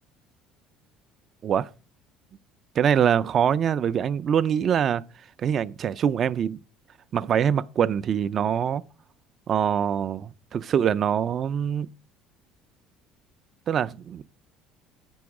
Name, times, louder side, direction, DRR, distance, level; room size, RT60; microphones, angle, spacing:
voice 1, 2.8-5.0 5.4-6.6 7.1-8.8 9.5-11.9 13.7-14.2, right 8 dB, 40° right, 0.4 m, -24 dB
8.6 x 6.1 x 4.7 m
cardioid pair, 120°, 0 cm